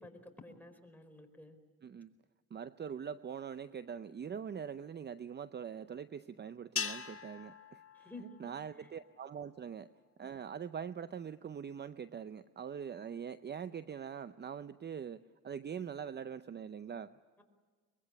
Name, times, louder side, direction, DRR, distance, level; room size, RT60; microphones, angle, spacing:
voice 1, 0.0-1.6 7.9-8.5 8.8-8.9 17.4-17.5, left 2 dB, 5° left, 4 dB, 4.5 m, -52 dB
voice 2, 1.8-2.1 2.5-7.8 8.4-9.9 10.2-17.1, right 7 dB, 35° right, 13 dB, 0.7 m, -43 dB
sound 1, 6.8-9.2, left 7 dB, 45° left, 1.8 m, -42 dB
23.5 x 21.5 x 8.8 m, 1.5 s
cardioid pair, 90°, 30 cm